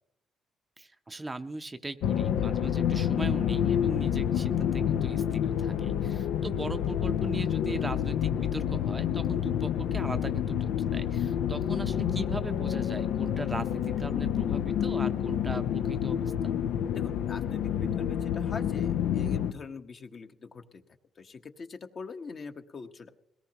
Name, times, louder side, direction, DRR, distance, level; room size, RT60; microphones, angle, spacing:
voice 1, 0.8-16.6, right 2 dB, 20° right, 9 dB, 0.6 m, -39 dB
sound 1, 2.0-19.5, left 9 dB, 85° left, 0.6 m, -28 dB
voice 2, 16.9-20.8 21.2-23.1, left 4 dB, 45° left, 6 dB, 1.1 m, -43 dB
21.5 x 18.0 x 2.9 m, 0.76 s
cardioid pair, 90°, 0 cm